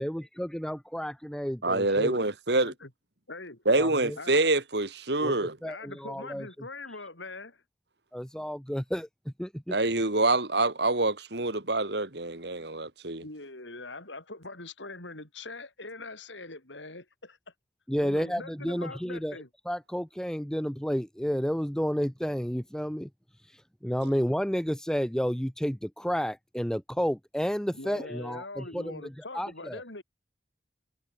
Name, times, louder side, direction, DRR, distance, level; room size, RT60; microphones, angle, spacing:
voice 1, 0.0-2.2 3.7-4.2 5.2-5.3 5.6-6.5 8.1-9.1 9.4-9.8 17.9-19.3 19.7-23.1 23.8-29.0 29.3-29.8, equal, 5° left, 1.0 m, -31 dB
voice 2, 1.6-2.7 3.7-5.6 9.7-13.2, right 2 dB, 65° right, 2.7 m, -26 dB
voice 3, 3.3-3.6 4.2-4.3 5.6-7.6 13.2-17.4 18.0-19.5 27.7-30.0, left 2 dB, 80° left, 6.4 m, -42 dB
head